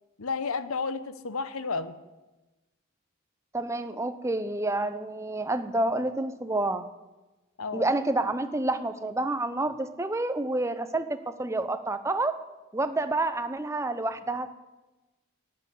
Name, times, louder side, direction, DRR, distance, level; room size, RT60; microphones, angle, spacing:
voice 1, 0.2-2.0 7.6-7.9, left 4 dB, 80° left, 13 dB, 0.9 m, -32 dB
voice 2, 3.5-6.8 7.7-12.3 12.7-14.5, right 2 dB, 15° right, 10 dB, 0.6 m, -29 dB
11.5 x 8.4 x 9.8 m, 1.1 s
head